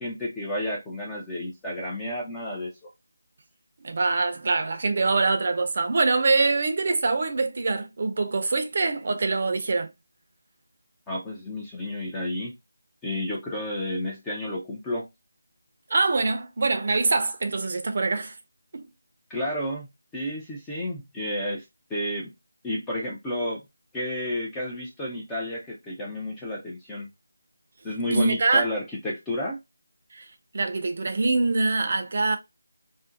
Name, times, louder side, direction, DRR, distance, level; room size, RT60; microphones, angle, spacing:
voice 1, 0.0-2.9 11.1-12.5 13.0-15.1 19.3-19.9 20.1-21.6 21.9-22.3 22.6-23.6 23.9-27.1 27.8-29.6, left 1 dB, 10° left, 0.5 m, -31 dB
voice 2, 3.8-9.9 15.9-18.3 18.7-18.9 28.1-28.7 30.1-30.3 30.5-32.4, right 3 dB, 45° right, 0.6 m, -24 dB
2.6 x 2.1 x 3.6 m
figure-of-eight pair, 165°, 0 cm